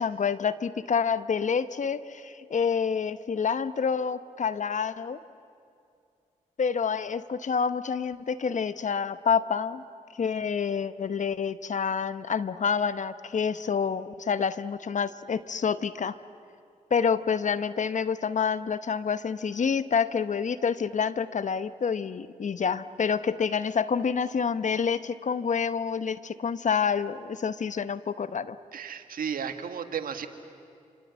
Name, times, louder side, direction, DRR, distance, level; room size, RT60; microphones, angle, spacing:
voice 1, 0.0-5.2 6.6-9.8 10.2-16.2 16.9-28.6, left 6 dB, 55° left, 14 dB, 1.0 m, -28 dB
voice 2, 28.7-30.3, right 7 dB, 70° right, 8 dB, 1.8 m, -33 dB
27.0 x 26.0 x 8.3 m, 2.4 s
supercardioid pair, 45°, 15 cm